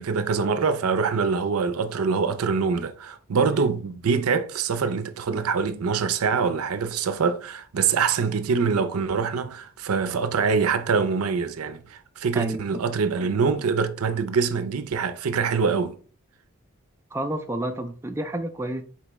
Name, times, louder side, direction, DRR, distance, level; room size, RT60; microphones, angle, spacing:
voice 1, 0.0-15.9, right 5 dB, 85° right, 0.5 m, -24 dB
voice 2, 17.1-18.8, right 1 dB, 10° right, 0.3 m, -29 dB
4.4 x 3.4 x 3.0 m
head